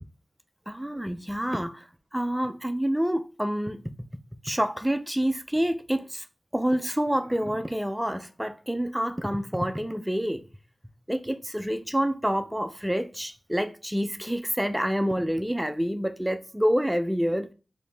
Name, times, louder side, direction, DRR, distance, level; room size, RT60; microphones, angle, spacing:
voice 1, 0.7-3.8 4.4-6.3 6.5-10.4 11.1-17.5, equal, 5° right, 0.3 m, -27 dB
4.9 x 2.6 x 3.2 m
wide cardioid pair, 100°, 0 cm